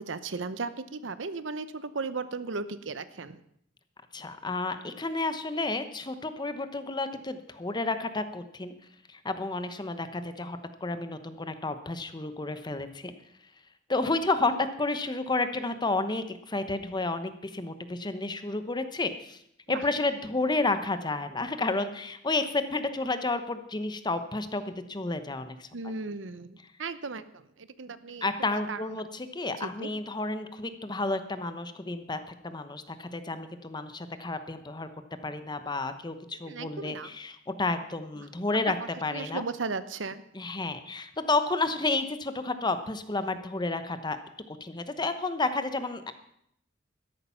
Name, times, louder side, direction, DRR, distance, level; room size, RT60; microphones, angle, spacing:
voice 1, 0.0-3.4 14.5-14.6 19.7-19.9 25.7-28.9 29.6-29.9 36.4-37.1 38.2-38.3 39.1-40.2, right 4 dB, 85° right, 13 dB, 0.8 m, -36 dB
voice 2, 4.1-8.7 9.1-13.1 13.9-19.4 19.7-25.7 28.2-34.9 35.2-38.8 39.0-39.4 40.3-44.2 44.6-46.1, left 3 dB, 25° left, 10 dB, 0.9 m, -31 dB
13.0 x 11.5 x 5.7 m, 0.72 s
head